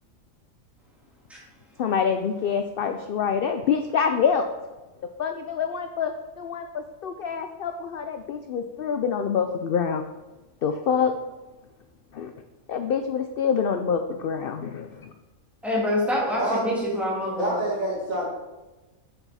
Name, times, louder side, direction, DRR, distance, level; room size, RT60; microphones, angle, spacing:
voice 1, 1.8-4.4 5.2-10.0 10.6-11.1 12.1-12.3 12.7-15.1, left 6 dB, 75° left, 7 dB, 0.5 m, -26 dB
voice 2, 15.6-17.6, left 1 dB, ahead, -5 dB, 2.1 m, -26 dB
voice 3, 16.4-16.7 17.4-18.2, right 1 dB, 70° right, -6 dB, 2.9 m, -26 dB
6.9 x 6.0 x 4.1 m, 1.1 s
omnidirectional pair, 1.5 m